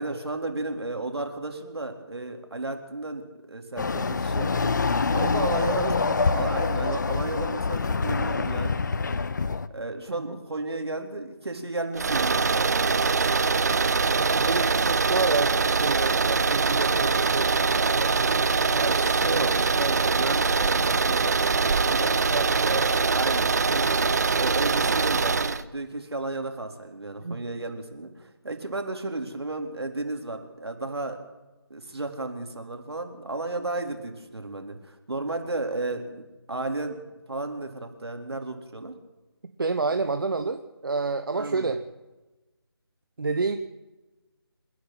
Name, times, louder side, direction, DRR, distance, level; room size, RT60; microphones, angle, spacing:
voice 1, 0.0-8.8 9.7-13.5 18.8-22.3 22.7-31.2 31.7-36.2 36.5-37.0 37.3-38.9 41.4-41.7, right 2 dB, 75° right, 4 dB, 4.0 m, -33 dB
Chatter / Car passing by / Motorcycle, 3.8-9.7, left 4 dB, 45° left, 0.9 m, -26 dB
voice 2, 5.7-6.0 10.1-10.4 14.2-19.5 22.3-22.8 27.2-27.4 39.6-41.8 43.2-43.6, right 4 dB, 55° right, 7 dB, 1.3 m, -30 dB
sound 1, 12.0-25.6, right 4 dB, 40° right, 0.9 m, -23 dB
28.5 x 10.5 x 9.2 m, 1.1 s
figure-of-eight pair, 165°, 13 cm